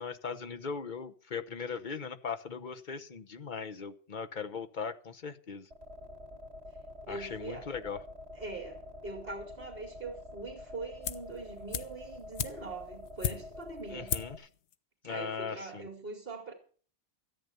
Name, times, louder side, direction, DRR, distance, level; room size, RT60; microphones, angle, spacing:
voice 1, 0.0-5.7 7.1-8.0 13.9-14.4 15.0-15.9, left 5 dB, 50° left, 1.0 m, -39 dB
sound 1, 5.7-14.4, left 2 dB, 70° right, 2.5 m, -47 dB
voice 2, 7.1-7.7 8.3-14.1 15.0-16.5, right 3 dB, 55° right, 2.6 m, -42 dB
sound 2, 11.0-11.4 11.7-13.7 14.1-14.5 14.7-14.8, left 8 dB, 80° left, 1.1 m, -36 dB
14.0 x 9.2 x 6.9 m
omnidirectional pair, 1.1 m